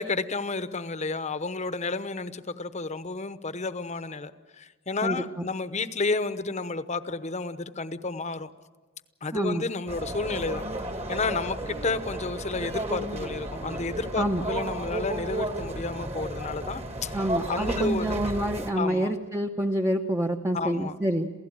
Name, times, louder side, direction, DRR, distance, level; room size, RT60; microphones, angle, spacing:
voice 1, 0.0-8.5 9.2-18.2 18.7-19.1 20.5-21.0, left 3 dB, 35° left, 12 dB, 0.9 m, -31 dB
voice 2, 9.3-9.6 14.2-14.4 17.1-21.3, right 1 dB, 15° right, 3 dB, 0.8 m, -27 dB
sound 1, 9.9-18.7, right 1 dB, 30° right, 1.6 m, -33 dB
28.0 x 16.5 x 8.9 m, 1.3 s
head